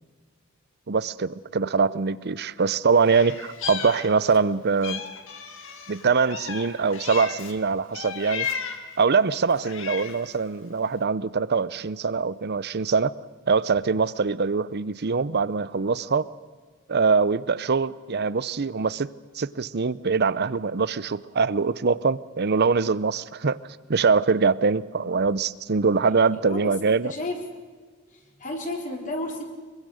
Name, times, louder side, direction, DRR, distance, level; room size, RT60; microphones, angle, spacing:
voice 1, 0.9-5.0 5.9-8.5 9.0-13.1 13.5-16.3 16.9-19.1 19.3-23.6 23.9-27.1, right 5 dB, 50° right, 18 dB, 0.7 m, -23 dB
Meow, 3.1-4.5 4.8-7.6 7.9-8.9 9.5-10.3, left 7 dB, 65° left, 2.1 m, -35 dB
voice 2, 26.0-26.7 27.0-27.5 28.1-29.5, left 1 dB, 40° left, 1 dB, 4.0 m, -33 dB
24.5 x 23.0 x 6.5 m, 1.4 s
head